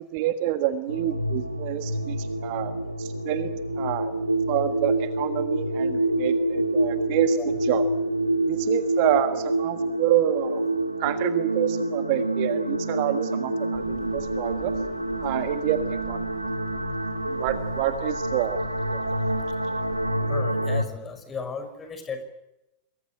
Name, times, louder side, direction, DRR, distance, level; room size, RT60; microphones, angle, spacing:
voice 1, 0.0-4.1 4.5-7.8 8.5-10.6 11.0-14.7 15.2-16.2 17.3-18.6 18.9-19.0, right 13 dB, 45° right, 10 dB, 1.6 m, -28 dB
sound 1, 0.9-20.8, right 1 dB, 85° right, 1.8 m, -27 dB
sound 2, 13.7-20.3, right 7 dB, 30° right, 4.9 m, -46 dB
voice 2, 20.3-22.2, left 5 dB, 20° left, 8 dB, 5.6 m, -35 dB
28.0 x 21.0 x 9.0 m, 0.94 s
figure-of-eight pair, 90°, 0 cm